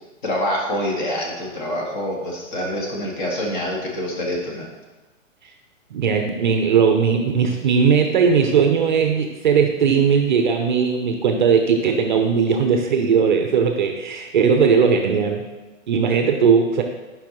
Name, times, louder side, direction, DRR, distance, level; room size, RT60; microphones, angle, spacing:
voice 1, 0.2-4.7, left 1 dB, 35° left, -2 dB, 1.9 m, -26 dB
voice 2, 5.9-15.4 15.9-16.8, right 6 dB, 40° right, 4 dB, 0.6 m, -18 dB
10.5 x 5.5 x 3.0 m, 1.2 s
hypercardioid pair, 155°, 39 cm